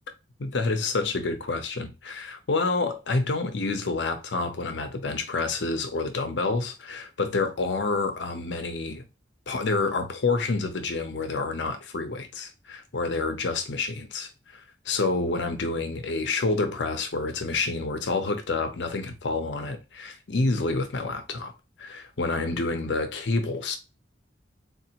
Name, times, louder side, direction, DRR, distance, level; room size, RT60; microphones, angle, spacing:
voice 1, 0.4-9.0 9.5-21.5 21.8-23.8, left 3 dB, 75° left, 0.7 m, -28 dB
3.8 x 2.5 x 2.8 m
head